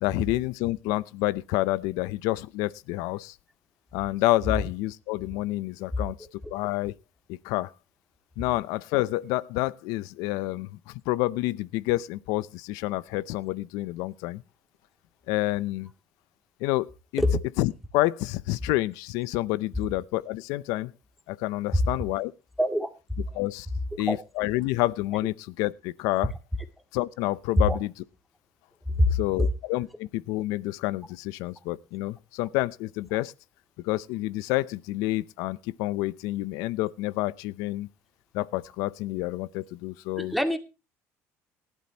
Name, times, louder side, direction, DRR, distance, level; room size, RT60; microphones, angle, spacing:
voice 1, 0.0-3.4 3.9-6.2 6.5-6.9 7.3-7.7 8.4-14.4 15.3-15.9 16.6-17.2 17.6-20.9 21.3-22.3 23.3-23.7 24.0-26.3 26.9-27.9 29.1-33.3 33.8-37.9 38.3-40.3, left 18 dB, 85° left, 0.6 m, -28 dB
voice 2, 22.6-22.9 24.1-24.2 27.7-27.8 29.0-29.2 40.2-40.6, left 1 dB, ahead, 2.1 m, -23 dB
18.5 x 11.5 x 2.9 m
cardioid pair, 120°, 6 cm